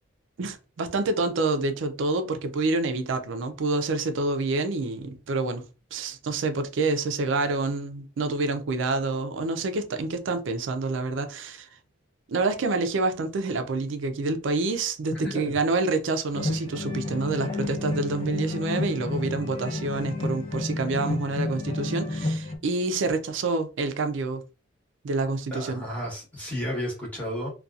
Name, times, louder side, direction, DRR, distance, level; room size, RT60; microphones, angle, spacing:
voice 1, 0.4-5.6 5.9-11.7 12.3-24.4 25.0-25.8, right 3 dB, 65° right, 0.4 m, -27 dB
voice 2, 15.1-15.5 25.5-27.5, equal, 5° left, 1.0 m, -32 dB
sound 1, 16.3-22.6, left 2 dB, 25° left, 0.5 m, -30 dB
2.6 x 2.3 x 2.3 m
head